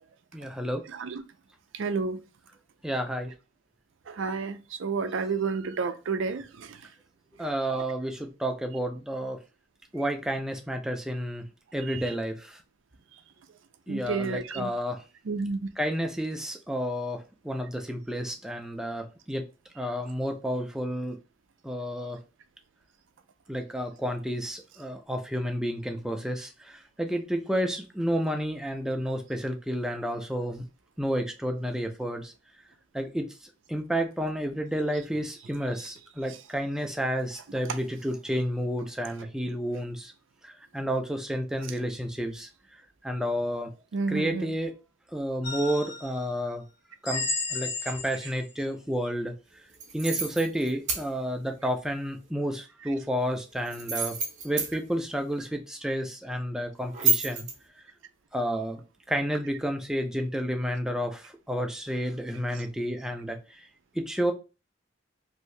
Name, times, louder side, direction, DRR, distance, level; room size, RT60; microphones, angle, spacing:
voice 1, 0.3-0.8 2.8-3.3 7.4-9.4 9.9-11.4 11.7-12.6 13.9-15.0 15.8-19.5 19.8-21.2 21.6-22.2 23.5-30.6 31.0-32.3 32.9-40.1 40.4-42.5 43.0-43.7 44.1-44.7 45.1-46.6 47.0-49.3 49.9-54.1 54.4-57.5 58.3-58.8 59.1-63.7 63.9-64.3, equal, 5° right, 0.4 m, -31 dB
voice 2, 1.7-2.2 4.1-6.8 11.9-12.0 13.9-14.7 15.3-15.7 43.9-44.5, right 4 dB, 80° right, 0.5 m, -30 dB
sound 1, 45.4-46.2 47.0-48.5, left 3 dB, 65° left, 1.0 m, -33 dB
sound 2, 49.7-51.0 53.7-54.7 56.9-57.5, right 3 dB, 35° right, 0.8 m, -28 dB
2.7 x 2.6 x 3.1 m
head